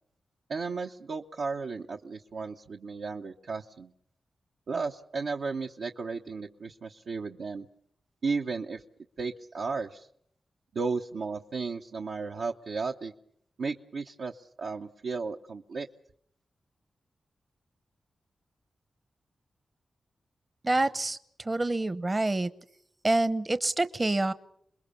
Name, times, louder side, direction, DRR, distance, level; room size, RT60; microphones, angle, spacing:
voice 1, 0.5-3.9 4.7-7.7 8.2-8.8 9.2-10.1 10.7-13.1 13.6-15.9, right 4 dB, 75° right, 2 dB, 1.0 m, -34 dB
voice 2, 20.6-22.5 23.0-24.3, right 2 dB, 30° right, 13 dB, 0.9 m, -27 dB
28.0 x 21.0 x 7.0 m, 0.71 s
cardioid pair, 55°, 0 cm